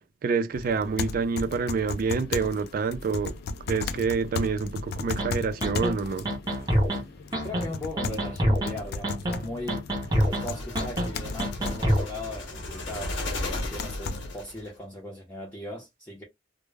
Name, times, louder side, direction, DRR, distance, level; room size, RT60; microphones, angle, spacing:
voice 1, 0.2-3.3 3.7-6.3, right 5 dB, 50° right, 0.3 m, -27 dB
sound 1, 0.5-14.4, left 3 dB, 60° left, 0.3 m, -36 dB
sound 2, 5.2-5.3 5.6-5.9 6.3-7.0 7.3-7.7 8.0-8.7 9.0-9.4 9.7-10.4 10.8-11.1 11.4-12.0, equal, 20° right, 0.7 m, -25 dB
voice 2, 7.4-9.9 10.4-16.2, left 1 dB, 10° left, 0.5 m, -38 dB
sound 3, 10.1-14.7, left 2 dB, 80° left, 0.9 m, -36 dB
2.0 x 2.0 x 3.2 m
head